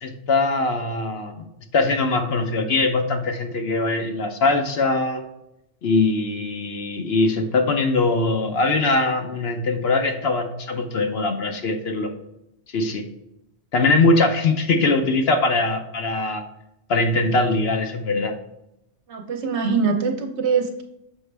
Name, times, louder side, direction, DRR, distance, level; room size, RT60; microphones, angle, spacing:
voice 1, 0.0-1.5 1.7-5.2 5.8-12.1 12.7-13.0 13.7-16.4 16.9-18.3, left 3 dB, 60° left, 5 dB, 0.9 m, -21 dB
voice 2, 19.1-20.8, right 5 dB, 65° right, 4 dB, 1.1 m, -23 dB
6.5 x 5.1 x 3.3 m, 0.85 s
omnidirectional pair, 1.3 m